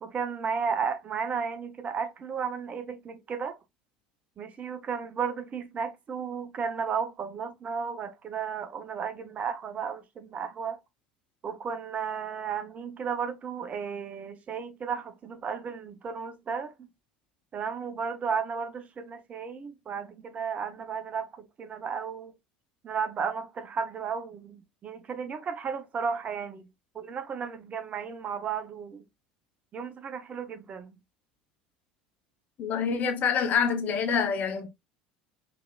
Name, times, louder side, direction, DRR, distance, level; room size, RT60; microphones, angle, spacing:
voice 1, 0.0-3.6 4.4-10.8 11.4-16.7 17.5-22.3 22.8-26.7 26.9-29.0 29.7-30.9, right 6 dB, 35° right, 0.7 m, -34 dB
voice 2, 32.6-34.7, left 6 dB, 45° left, 0.9 m, -26 dB
3.9 x 3.2 x 2.3 m
figure-of-eight pair, 70°, 4 cm